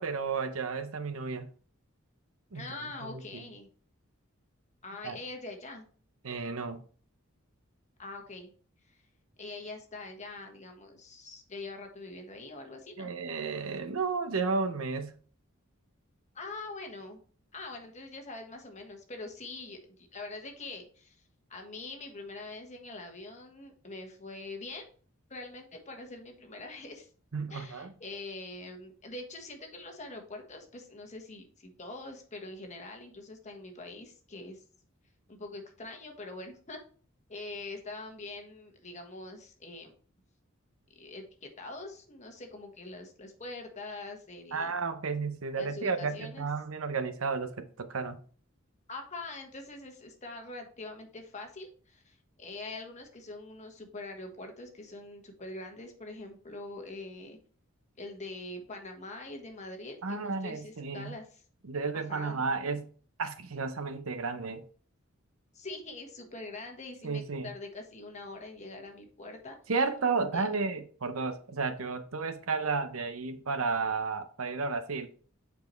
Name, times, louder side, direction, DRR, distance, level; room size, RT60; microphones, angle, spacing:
voice 1, 0.0-1.5 2.5-3.2 5.0-5.2 6.2-6.8 13.0-15.2 27.3-27.9 44.5-48.2 60.0-61.1 61.6-62.9 63.2-64.6 67.0-67.5 69.7-75.2, right 4 dB, 90° right, 0.8 m, -32 dB
voice 2, 2.5-3.7 4.8-5.9 8.0-8.5 8.9-9.0 9.4-13.1 16.3-17.2 17.5-21.2 21.5-24.9 25.3-27.1 27.5-34.6 35.3-36.8 37.3-39.9 40.9-44.7 45.6-46.5 48.9-57.4 58.0-61.4 61.9-62.4 65.5-69.6 70.3-70.4, left 2 dB, 35° left, 1.4 m, -44 dB
8.2 x 4.7 x 3.1 m
head